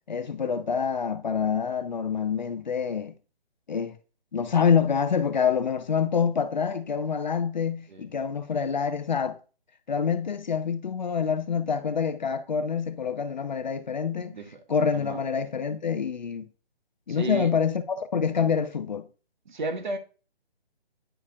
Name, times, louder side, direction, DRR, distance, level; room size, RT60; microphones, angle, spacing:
voice 1, 0.1-3.1 3.7-4.0 4.3-9.4 9.9-14.4 14.7-16.4 17.1-19.1, left 6 dB, 45° left, 0.5 m, -26 dB
voice 2, 14.3-14.6 14.9-15.2 17.1-17.5 19.5-20.0, right 2 dB, 50° right, 1.0 m, -33 dB
9.9 x 4.7 x 2.3 m
hypercardioid pair, 160°, 31 cm